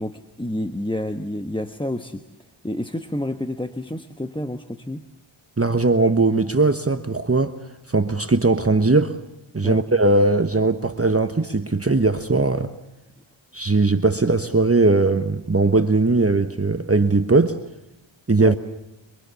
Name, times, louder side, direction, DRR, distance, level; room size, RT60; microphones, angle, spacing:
voice 1, 0.0-2.2 2.6-5.0 9.6-9.8 18.4-18.5, left 1 dB, 10° left, 8 dB, 1.1 m, -29 dB
voice 2, 5.6-7.6 7.9-9.2 9.5-12.7 13.5-17.6 18.3-18.6, right 3 dB, 30° right, 8 dB, 1.2 m, -19 dB
27.0 x 22.5 x 7.0 m, 0.88 s
wide cardioid pair, 50°, 48 cm